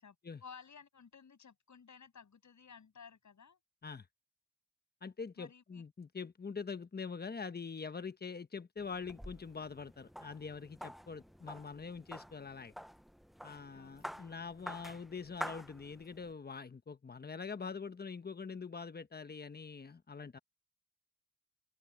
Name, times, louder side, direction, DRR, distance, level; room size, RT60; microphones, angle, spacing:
voice 1, 0.4-3.6 5.4-5.8 13.7-13.9, left 6 dB, 55° left, 7.4 m, -55 dB
voice 2, 5.0-12.7 13.4-20.4, left 5 dB, 25° left, 1.1 m, -44 dB
sound 1, 8.8-16.3, equal, ahead, 0.6 m, -48 dB
open air
cardioid pair, 100°, 35 cm